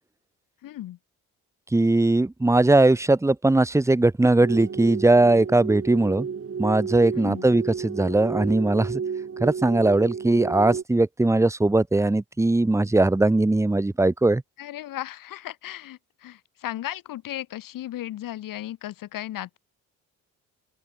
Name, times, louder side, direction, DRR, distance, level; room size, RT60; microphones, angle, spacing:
voice 1, 0.6-1.0 7.1-7.5 14.6-19.6, left 13 dB, 75° left, 6.6 m, -35 dB
voice 2, 1.7-6.3 6.6-9.0 9.4-14.4, right 2 dB, 10° right, 0.9 m, -20 dB
sound 1, 4.4-10.8, right 6 dB, 40° right, 6.4 m, -32 dB
open air
supercardioid pair, 75°, 33 cm